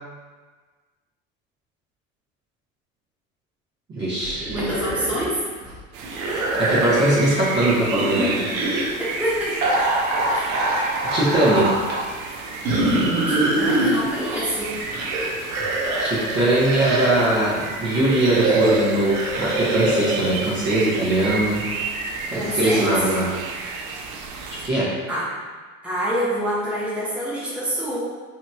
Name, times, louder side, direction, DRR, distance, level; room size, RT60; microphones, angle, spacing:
voice 1, 3.9-4.4 6.5-8.5 11.1-11.7 16.0-21.6 22.3-23.3 24.5-24.9, right 1 dB, 25° right, -8 dB, 0.9 m, -21 dB
sound 1, 4.2-5.3 5.6-7.3 7.9-8.8 9.6-12.0 12.7-14.0 14.6-17.3 17.9-20.3, right 2 dB, 80° right, 0.7 m, -24 dB
voice 2, 4.5-5.4 9.2-9.6 10.3-10.5 13.3-14.7 22.3-22.9 25.1-25.3 25.8-28.0, equal, 5° right, -9 dB, 0.9 m, -26 dB
sound 2, 5.9-24.7, right 3 dB, 50° right, 0.4 m, -32 dB
2.8 x 2.8 x 2.3 m, 1.4 s
hypercardioid pair, 75°, 41 cm